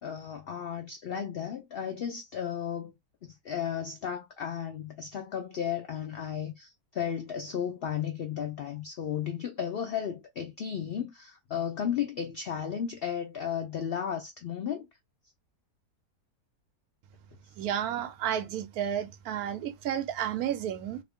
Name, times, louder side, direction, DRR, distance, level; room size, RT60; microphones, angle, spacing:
voice 1, 0.0-2.9 3.2-14.9, left 8 dB, 85° left, 0.5 m, -34 dB
voice 2, 17.6-21.0, right 10 dB, 80° right, 1.1 m, -32 dB
2.7 x 2.6 x 3.4 m
omnidirectional pair, 1.6 m